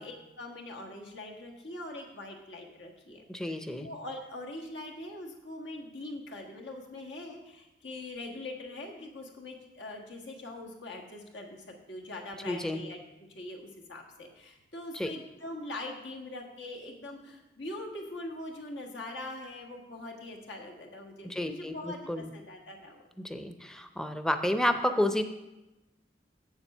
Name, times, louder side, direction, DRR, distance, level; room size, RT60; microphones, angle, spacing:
voice 1, 0.0-13.0 13.3-23.0, left 2 dB, 85° left, 0 dB, 1.5 m, -42 dB
voice 2, 3.3-3.9 12.4-12.8 14.9-15.1 21.2-22.3 23.2-25.2, left 1 dB, 5° left, 8 dB, 0.5 m, -30 dB
7.8 x 7.2 x 5.4 m, 0.99 s
head